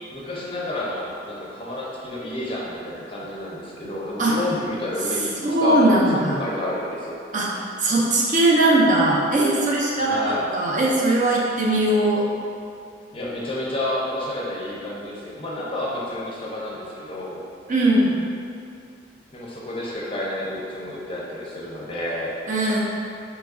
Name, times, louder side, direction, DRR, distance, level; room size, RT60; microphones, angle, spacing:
voice 1, 0.1-5.9 6.3-7.2 10.0-10.5 13.1-17.4 19.3-22.3, left 1 dB, 30° left, -5 dB, 0.5 m, -30 dB
voice 2, 5.4-6.4 7.3-7.5 7.8-12.3 17.7-18.1 22.5-22.8, right 1 dB, 45° right, -4 dB, 0.4 m, -19 dB
3.0 x 2.3 x 3.5 m, 2.5 s
head